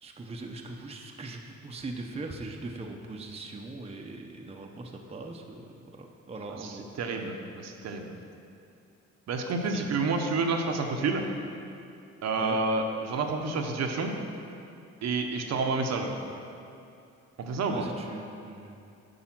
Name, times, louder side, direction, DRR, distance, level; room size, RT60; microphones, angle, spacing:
voice 1, 0.0-6.9 9.7-9.9 12.4-12.6 17.7-18.8, right 2 dB, 20° right, 2 dB, 0.7 m, -40 dB
voice 2, 6.6-8.1 9.3-11.2 12.2-14.1 15.0-16.1 17.4-17.9, right 3 dB, 60° right, 3 dB, 0.9 m, -29 dB
8.8 x 4.8 x 6.0 m, 2.6 s
cardioid pair, 90°, 30 cm